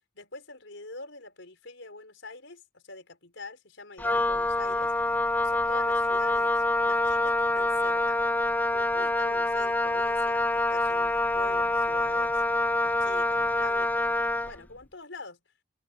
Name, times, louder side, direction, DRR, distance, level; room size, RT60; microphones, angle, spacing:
voice 1, 0.1-4.9 5.4-8.2 8.7-12.4 12.8-15.4, left 3 dB, 75° left, 4.6 m, -45 dB
Wind instrument woodwind instrument, 4.0-14.6, left 2 dB, 10° left, 0.5 m, -26 dB
head